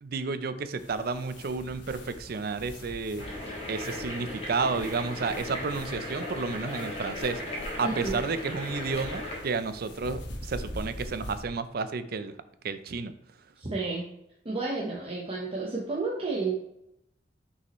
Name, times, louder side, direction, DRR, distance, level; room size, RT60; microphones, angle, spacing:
voice 1, 0.0-3.3 3.7-7.4 7.8-12.3 12.6-13.2, right 4 dB, 60° right, 12 dB, 0.5 m, -31 dB
sound 1, 0.8-11.4, equal, 80° left, 1.3 m, -44 dB
sound 2, 3.2-9.4, left 1 dB, 35° left, 2.0 m, -37 dB
voice 2, 7.8-8.2 13.6-14.0 14.4-16.5, right 3 dB, 30° right, -4 dB, 1.0 m, -31 dB
6.2 x 5.5 x 3.0 m, 0.82 s
head